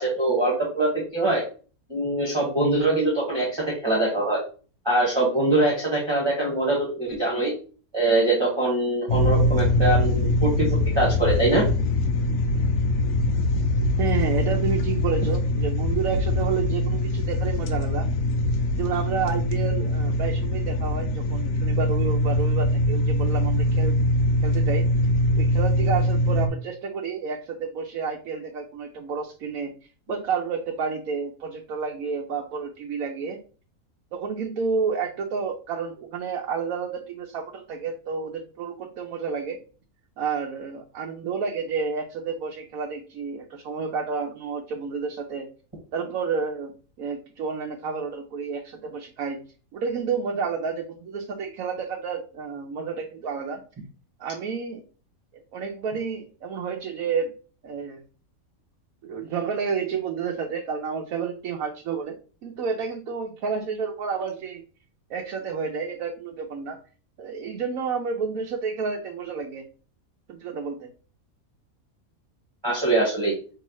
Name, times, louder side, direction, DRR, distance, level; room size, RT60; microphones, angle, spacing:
voice 1, 0.0-1.4 1.9-4.4 4.8-7.5 7.9-11.6 72.6-73.3, right 2 dB, 20° right, -5 dB, 1.5 m, -23 dB
sound 1, 9.1-26.5, left 1 dB, 70° left, 1.1 m, -23 dB
voice 2, 14.0-18.1 18.7-24.0 24.4-24.9 25.4-29.7 30.1-33.4 34.1-39.6 40.2-45.5 45.9-49.4 49.7-53.6 54.2-54.8 55.3-57.3 57.6-58.0 59.0-62.2 62.4-64.6 65.1-66.8 67.2-69.7 70.3-70.9, right 5 dB, 75° right, 1 dB, 1.1 m, -30 dB
5.8 x 3.0 x 3.0 m, 0.38 s
omnidirectional pair, 1.5 m